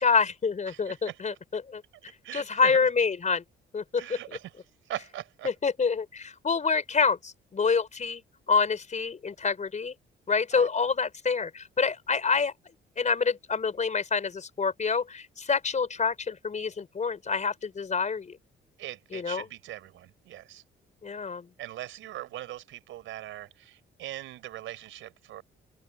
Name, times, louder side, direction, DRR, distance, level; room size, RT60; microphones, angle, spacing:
voice 1, 0.0-1.8 2.3-3.4 3.7-4.4 5.4-8.2 8.5-9.9 10.3-12.5 13.0-18.3 19.1-19.5 21.0-21.5, left 5 dB, 35° left, 4.3 m, -27 dB
voice 2, 0.7-1.2 2.2-2.8 4.0-4.5 4.9-5.5 10.5-10.7 18.8-20.6 21.6-25.4, right 13 dB, 85° right, 4.9 m, -40 dB
open air
cardioid pair, 90°, 20 cm